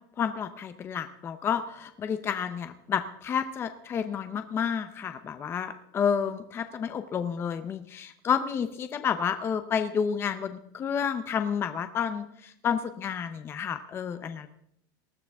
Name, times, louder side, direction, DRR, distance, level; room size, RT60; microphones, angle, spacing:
voice 1, 0.2-14.5, left 7 dB, 25° left, 9 dB, 0.7 m, -30 dB
19.5 x 13.0 x 3.6 m, 0.72 s
supercardioid pair, 155°, 11 cm